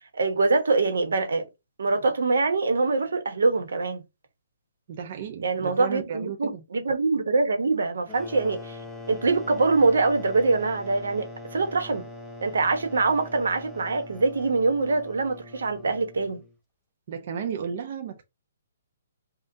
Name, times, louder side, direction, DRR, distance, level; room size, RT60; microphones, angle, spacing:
voice 1, 0.1-1.4 1.8-4.0 5.4-8.8 9.1-11.3 11.5-12.1 12.4-16.4, right 3 dB, 85° right, 1.1 m, -24 dB
voice 2, 4.9-6.6 17.1-18.2, right 7 dB, 45° right, 0.6 m, -34 dB
sound 1, 8.1-16.6, left 2 dB, 5° left, 0.6 m, -42 dB
5.2 x 2.4 x 2.7 m
hypercardioid pair, 155°, 0 cm